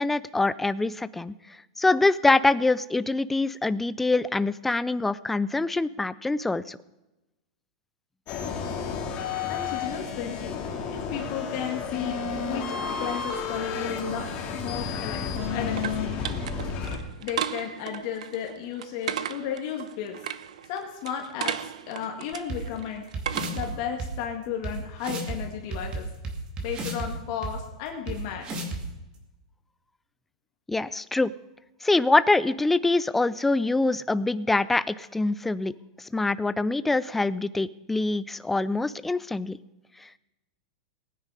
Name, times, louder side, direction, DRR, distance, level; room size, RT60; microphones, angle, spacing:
voice 1, 0.0-1.3 1.8-6.8 30.7-31.3 31.8-39.6 40.0-40.1, left 2 dB, 5° left, 17 dB, 0.4 m, -24 dB
sound 1, 8.3-17.0, left 5 dB, 30° left, 2.3 m, -31 dB
voice 2, 9.5-14.3 14.6-16.1 16.9-20.3 20.7-23.0 23.5-26.1 26.6-28.5, left 8 dB, 45° left, 1 dB, 1.9 m, -34 dB
sound 2, 15.0-23.8, right 9 dB, 90° right, 0.8 m, -36 dB
sound 3, 22.5-22.6 23.1-23.7 24.0-24.1 24.6-24.7 25.0-25.4 25.7-27.1 27.4-27.5 28.1-28.2 28.4-28.8, right 2 dB, 25° right, 2.4 m, -32 dB
19.0 x 9.8 x 4.9 m, 1.0 s
supercardioid pair, 155°, 4 cm